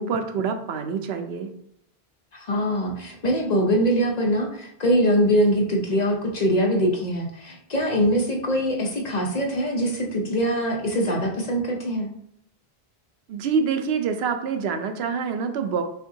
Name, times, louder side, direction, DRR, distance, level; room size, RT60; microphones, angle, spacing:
voice 1, 0.0-1.5 13.3-15.8, right 6 dB, 75° right, 6 dB, 0.8 m, -26 dB
voice 2, 2.3-12.1, equal, 45° left, 0 dB, 0.7 m, -23 dB
5.6 x 2.8 x 2.7 m, 0.72 s
omnidirectional pair, 1.1 m